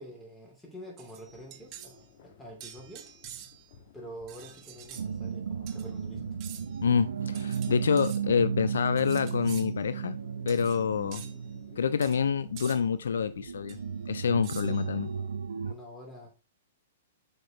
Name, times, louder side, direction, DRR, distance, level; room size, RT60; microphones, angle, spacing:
voice 1, 0.0-2.0 2.2-3.1 3.9-6.3 14.6-14.8 15.6-16.3, equal, 10° left, 2.8 m, -46 dB
sound 1, 1.0-2.0 2.6-3.7 4.3-5.1 5.7-5.9 6.4-6.8 7.3-8.2 9.0-9.7 10.5-10.8 11.1-11.4 12.0-12.2 12.6-12.8 13.7-13.8 14.4-14.9, right 10 dB, 35° right, 0.9 m, -47 dB
sound 2, 1.3-15.4, left 5 dB, 50° left, 1.2 m, -55 dB
sound 3, 5.0-15.7, right 7 dB, 80° right, 0.6 m, -35 dB
voice 2, 6.8-10.2 10.5-11.2 11.8-13.8 14.1-15.1, left 7 dB, 75° left, 0.3 m, -27 dB
6.2 x 5.0 x 3.1 m
hypercardioid pair, 120°, 0 cm